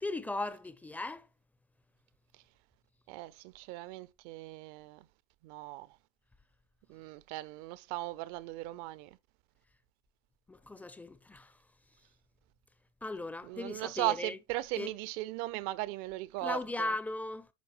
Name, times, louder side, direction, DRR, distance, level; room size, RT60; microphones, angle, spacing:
voice 1, 0.0-1.3 10.5-11.6 13.0-14.4 14.8-14.9 16.4-17.5, left 2 dB, 10° left, 0.6 m, -37 dB
voice 2, 3.1-5.1 5.4-6.0 6.9-9.2 13.4-17.0, right 18 dB, 45° right, 0.6 m, -38 dB
10.5 x 4.7 x 3.1 m
figure-of-eight pair, 85°, 20 cm